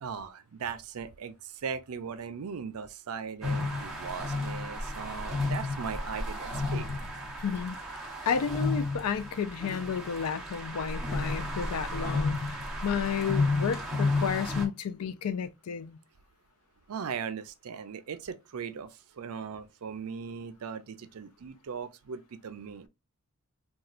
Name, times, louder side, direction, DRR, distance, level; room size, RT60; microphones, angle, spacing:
voice 1, 0.0-6.9 16.9-22.9, right 6 dB, 75° right, 0.5 m, -39 dB
Below the Highway bridge, 3.4-14.7, left 2 dB, ahead, 0.7 m, -32 dB
voice 2, 7.4-7.8 8.3-16.0, left 7 dB, 85° left, 0.4 m, -32 dB
4.1 x 2.3 x 2.4 m
head